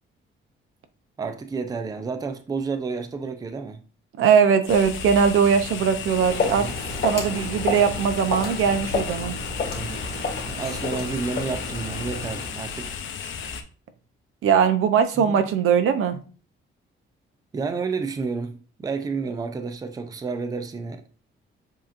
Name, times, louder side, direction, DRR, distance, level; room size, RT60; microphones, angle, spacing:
voice 1, 1.2-3.8 6.6-6.8 9.7-13.0 15.2-15.4 17.5-21.2, right 4 dB, 20° right, 0.4 m, -31 dB
voice 2, 4.2-6.7 7.0-9.3 14.4-16.2, right 7 dB, 85° right, 0.7 m, -20 dB
sound 1, 4.7-13.6, left 6 dB, 65° left, 0.6 m, -34 dB
Walk footsteps, 6.0-12.6, left 3 dB, 50° left, 1.8 m, -31 dB
7.2 x 2.9 x 2.5 m
cardioid pair, 150°, 21 cm